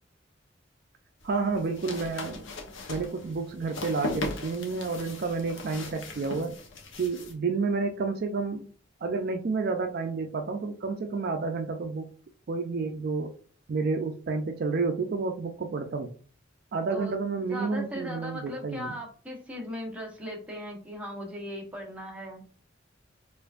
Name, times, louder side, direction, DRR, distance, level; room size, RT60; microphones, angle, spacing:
sound 1, 1.2-7.3, left 2 dB, 85° left, 0.8 m, -38 dB
voice 1, 1.2-2.4 2.9-6.6 7.0-8.6 9.0-12.1 12.5-13.4 13.7-16.1 16.7-19.0, right 4 dB, 55° right, 5 dB, 0.4 m, -30 dB
voice 2, 17.5-22.4, equal, 5° right, -1 dB, 0.9 m, -38 dB
4.4 x 2.5 x 2.4 m, 0.42 s
head